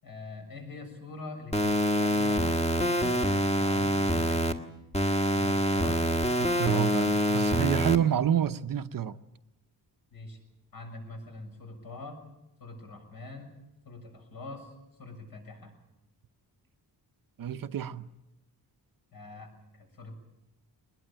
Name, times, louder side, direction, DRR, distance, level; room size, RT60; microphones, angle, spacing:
voice 1, 0.0-4.5 5.3-6.0 10.1-10.4 10.7-12.2 12.6-13.5 13.9-14.7 15.0-15.7 19.1-19.5 19.8-20.1, left 2 dB, 60° left, 7.1 m, -44 dB
sound 1, 1.5-4.5 4.9-8.0, equal, 15° left, 1.5 m, -26 dB
voice 2, 6.4-9.2 17.4-18.1, right 9 dB, 55° right, 0.8 m, -28 dB
22.0 x 20.5 x 8.8 m
wide cardioid pair, 165°, 40 cm